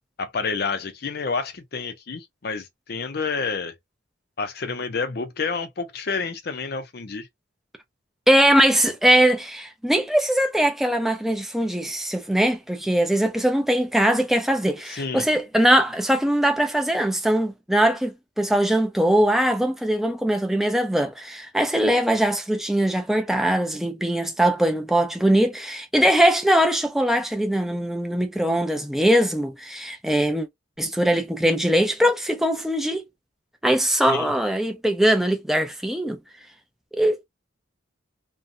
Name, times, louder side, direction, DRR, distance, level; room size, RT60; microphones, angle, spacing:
voice 1, 0.2-3.7 4.4-7.3 14.9-15.2 34.1-34.3, left 4 dB, 50° left, 0.5 m, -29 dB
voice 2, 8.3-30.5 30.8-33.0 33.6-36.2 36.9-37.2, right 1 dB, ahead, 0.4 m, -21 dB
2.6 x 2.2 x 2.5 m
head